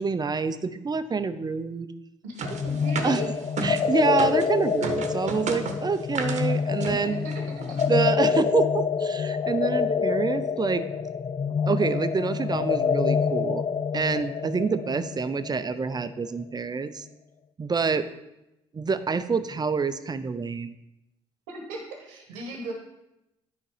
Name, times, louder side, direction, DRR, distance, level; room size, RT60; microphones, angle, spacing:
voice 1, 0.0-1.9 3.0-3.2 3.6-7.3 7.9-10.9 11.7-13.6 13.9-17.1 17.6-18.1 18.7-20.8, right 5 dB, 30° right, 11 dB, 0.6 m, -27 dB
sound 1, 2.4-4.5 4.8-6.5 6.8-7.0 7.3-7.4 7.6-7.9, right 4 dB, 60° right, 1.0 m, -33 dB
sound 2, 2.5-16.0, left 6 dB, 35° left, 0.4 m, -27 dB
voice 2, 2.6-3.3 6.9-7.0 7.2-7.4 7.7-7.8 21.5-22.7, right 1 dB, 90° right, 1 dB, 1.2 m, -36 dB
9.9 x 4.1 x 5.0 m, 0.91 s
hypercardioid pair, 55°, 14 cm